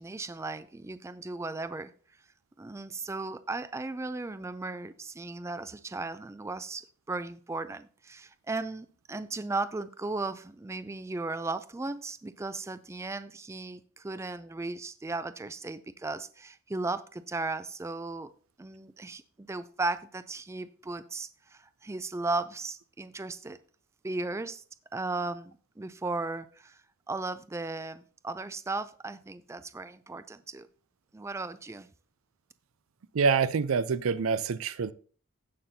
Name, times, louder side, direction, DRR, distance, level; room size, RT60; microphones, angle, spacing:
voice 1, 0.0-1.9 2.6-18.3 18.6-23.6 24.0-24.6 24.9-30.7 31.1-31.9, right 3 dB, 15° right, 0.3 m, -36 dB
voice 2, 33.1-34.9, right 5 dB, 75° right, 0.5 m, -26 dB
16.0 x 5.8 x 2.7 m
head